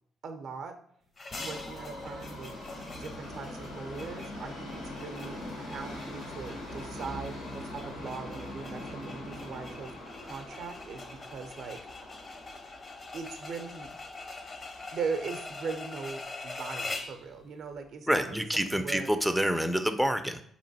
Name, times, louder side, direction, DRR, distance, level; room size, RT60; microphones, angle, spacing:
voice 1, 0.2-0.7 1.4-9.9 10.2-11.8 13.1-13.9 14.9-19.1, right 5 dB, 65° right, 7 dB, 0.5 m, -40 dB
sound 1, 1.2-17.2, left 3 dB, 40° left, 0.6 m, -44 dB
Subway metro underground, 1.3-15.4 15.7-15.8 16.7-16.8 17.0-17.1 17.8-17.9, left 1 dB, 85° left, 1.2 m, -43 dB
voice 2, 18.1-20.4, equal, 5° right, 7 dB, 0.3 m, -27 dB
3.7 x 3.0 x 2.7 m, 0.66 s
hypercardioid pair, 50°, 0 cm